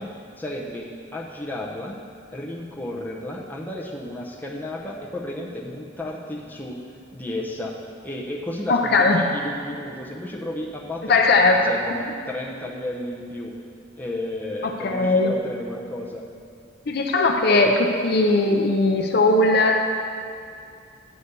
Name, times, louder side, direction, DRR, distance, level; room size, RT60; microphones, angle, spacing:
voice 1, 0.0-2.0 2.3-6.8 7.1-7.7 8.0-13.5 14.0-16.2, left 1 dB, 10° left, -3 dB, 0.7 m, -33 dB
voice 2, 8.7-9.2 11.1-11.6 14.6-15.3 16.9-19.8, left 2 dB, 50° left, 3 dB, 0.6 m, -19 dB
9.6 x 4.1 x 6.7 m, 2.4 s
head